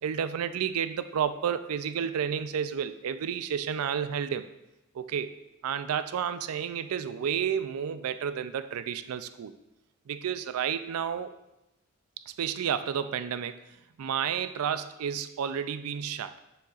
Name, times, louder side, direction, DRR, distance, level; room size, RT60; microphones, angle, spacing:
voice 1, 0.0-4.4 4.9-5.3 5.6-9.5 10.1-11.4 12.3-13.6 14.0-16.4, right 8 dB, 85° right, 12 dB, 0.4 m, -31 dB
6.7 x 6.5 x 2.4 m, 0.93 s
head